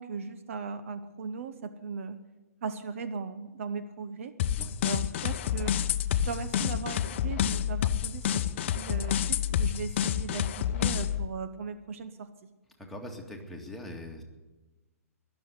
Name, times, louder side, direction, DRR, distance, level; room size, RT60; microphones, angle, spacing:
voice 1, 0.0-2.2 2.6-4.3 4.8-5.8 6.2-8.4 8.8-12.3, right 5 dB, 60° right, 11 dB, 0.9 m, -38 dB
sound 1, 4.4-11.2, left 10 dB, 50° left, 0.6 m, -29 dB
voice 2, 12.8-14.2, left 1 dB, ahead, -1 dB, 2.1 m, -42 dB
21.0 x 7.1 x 7.9 m, 1.2 s
figure-of-eight pair, 125°, 8 cm